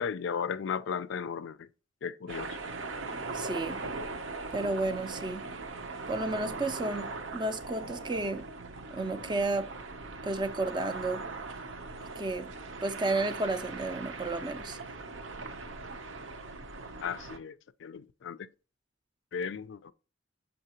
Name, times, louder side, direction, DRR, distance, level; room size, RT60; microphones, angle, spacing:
voice 1, 0.0-1.7 2.0-2.6 17.0-17.6 17.8-18.4 19.3-19.9, left 6 dB, 60° left, 0.4 m, -35 dB
sound 1, 2.3-17.4, right 3 dB, 70° right, 0.7 m, -40 dB
voice 2, 3.3-3.8 4.5-5.5 6.1-8.5 8.9-9.7 10.2-11.2 12.2-12.5 12.8-14.8, right 2 dB, 20° right, 0.4 m, -32 dB
6.6 x 5.4 x 2.9 m
head